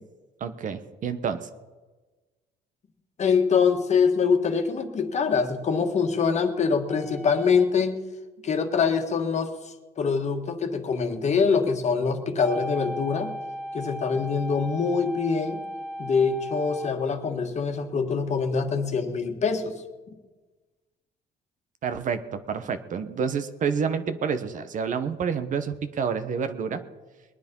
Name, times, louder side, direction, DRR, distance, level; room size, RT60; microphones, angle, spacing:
voice 1, 0.4-1.5 21.8-26.8, right 6 dB, 50° right, 10 dB, 1.2 m, -28 dB
voice 2, 3.2-8.0 8.4-9.5 10.0-13.3 13.7-15.6 16.0-19.8, left 5 dB, 40° left, 5 dB, 1.7 m, -24 dB
sound 1, 6.9-7.7 12.4-16.9, equal, 5° left, 1.4 m, -36 dB
21.5 x 9.8 x 5.5 m, 1.3 s
cardioid pair, 110°, 17 cm